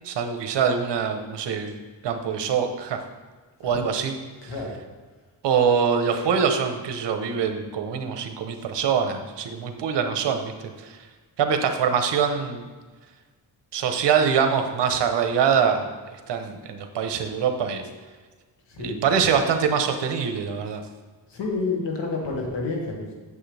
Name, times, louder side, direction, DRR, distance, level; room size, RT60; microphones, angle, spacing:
voice 1, 0.0-1.8 2.0-3.0 3.6-4.1 4.4-4.5 5.4-10.5 10.8-11.0 11.4-12.7 13.7-15.9 16.3-17.9 18.8-20.8, right 7 dB, 80° right, 6 dB, 1.0 m, -24 dB
voice 2, 18.7-19.1 21.3-23.1, left 3 dB, 85° left, -1 dB, 1.9 m, -29 dB
8.7 x 7.2 x 3.4 m, 1.4 s
cardioid pair, 105°, 41 cm